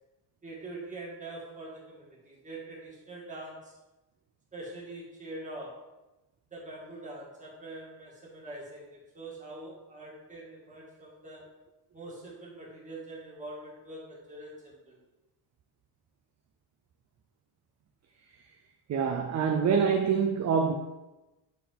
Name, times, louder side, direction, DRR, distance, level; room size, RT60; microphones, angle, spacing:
voice 1, 0.4-3.8 4.5-5.8 6.5-11.5 11.9-15.0, right 2 dB, 15° right, 1.8 m, -44 dB
voice 2, 18.9-20.7, right 6 dB, 40° right, 0.5 m, -25 dB
7.6 x 4.4 x 3.5 m
cardioid pair, 165°, 45 cm